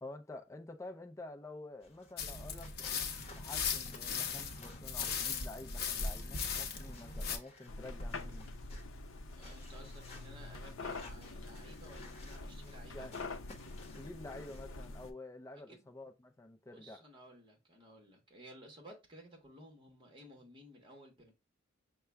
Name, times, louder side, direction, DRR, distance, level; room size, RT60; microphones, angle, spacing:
voice 1, 0.0-2.9 3.3-8.5 12.9-13.2 13.6-17.0, left 2 dB, 15° left, 0.5 m, -49 dB
sound 1, 1.8-14.7, left 2 dB, 35° left, 1.1 m, -57 dB
sound 2, 2.2-7.4, left 6 dB, 55° left, 0.7 m, -38 dB
sound 3, 7.7-15.1, left 2 dB, 90° left, 0.7 m, -45 dB
voice 2, 9.3-13.1 15.5-15.9 16.7-21.3, right 1 dB, 25° right, 1.3 m, -56 dB
5.7 x 2.3 x 3.3 m
head